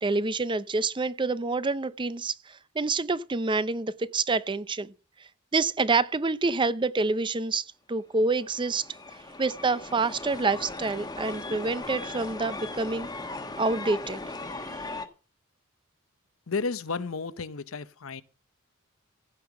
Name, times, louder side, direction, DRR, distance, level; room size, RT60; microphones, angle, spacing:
voice 1, 0.0-4.9 5.5-8.9 9.4-13.1 13.6-14.2 14.6-14.8, right 3 dB, 25° right, 0.6 m, -27 dB
sound 1, 8.3-15.1, left 2 dB, 20° left, 1.2 m, -38 dB
voice 2, 16.5-18.2, left 4 dB, 85° left, 0.8 m, -32 dB
15.5 x 5.7 x 7.0 m
head